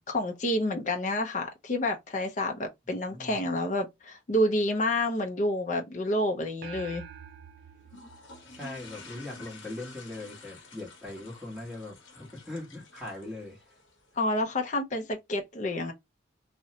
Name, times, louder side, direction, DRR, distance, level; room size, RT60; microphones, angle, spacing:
voice 1, 0.1-7.0 14.2-15.9, left 1 dB, 40° left, 0.5 m, -29 dB
sound 1, 6.6-9.3, right 8 dB, 50° right, 0.3 m, -47 dB
sound 2, 7.8-14.4, left 3 dB, 75° left, 0.8 m, -50 dB
voice 2, 8.5-13.6, left 2 dB, ahead, 1.1 m, -40 dB
2.6 x 2.1 x 2.7 m
head